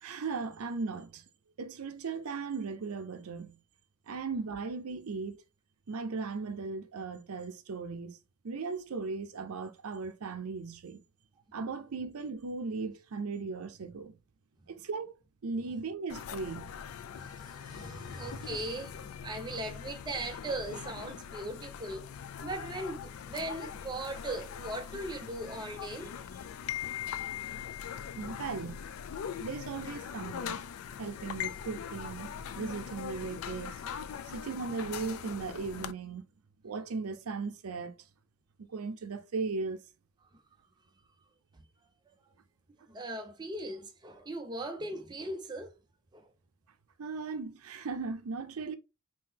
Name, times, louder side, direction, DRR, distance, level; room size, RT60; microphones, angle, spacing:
voice 1, 0.0-1.2 1.6-3.6 4.1-5.4 5.9-8.2 8.4-11.0 11.5-14.2 14.7-15.1 15.4-16.8 28.1-28.8 29.4-30.6 31.0-32.3 32.6-33.8 34.3-36.2 36.6-38.0 38.6-39.8 47.0-48.8, right 4 dB, 75° right, 0.5 m, -37 dB
sound 1, 16.1-35.9, left 8 dB, 70° left, 0.3 m, -41 dB
voice 2, 17.1-22.1 22.4-26.4 41.5-41.6 42.9-45.8 46.1-46.3, right 2 dB, 20° right, 0.5 m, -39 dB
3.7 x 2.8 x 2.7 m
head